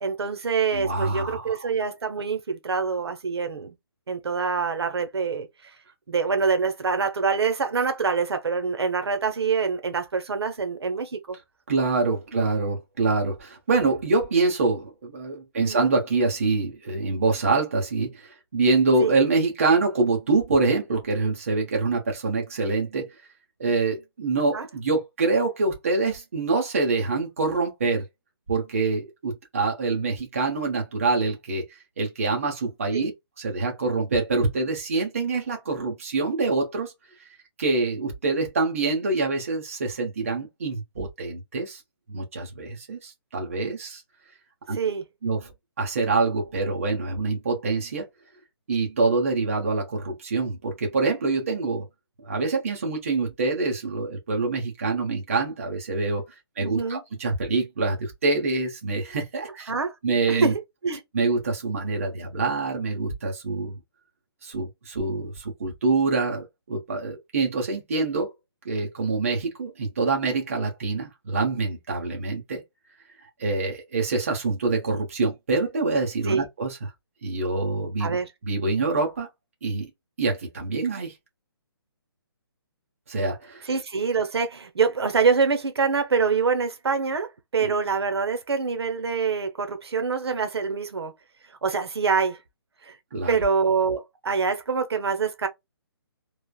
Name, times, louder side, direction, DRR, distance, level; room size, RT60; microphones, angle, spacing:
voice 1, 0.0-3.7 4.1-5.7 6.1-11.4 12.3-12.5 15.5-15.9 19.0-19.2 24.5-24.7 32.9-33.1 44.7-45.0 56.6-57.0 59.7-59.9 60.4-60.5 60.8-61.0 76.3-76.5 78.0-78.3 83.6-87.3 87.5-91.1 91.6-92.4 92.8-93.0 93.3-95.5, right 5 dB, 80° right, 0.8 m, -25 dB
voice 2, 0.7-1.7 11.7-23.1 23.6-28.0 28.5-31.6 32.0-33.1 33.4-36.9 37.6-41.8 42.1-44.0 44.7-44.8 45.2-45.5 45.8-48.0 48.7-51.9 52.2-56.2 56.6-59.7 60.0-60.5 61.1-63.7 64.4-68.3 68.6-72.6 73.4-76.9 77.2-78.2 78.4-79.3 79.6-79.9 80.2-81.1 83.1-83.6 87.6-87.7 93.1-93.3, right 3 dB, 35° right, 0.8 m, -25 dB
3.1 x 2.0 x 2.3 m
hypercardioid pair, 180°, 13 cm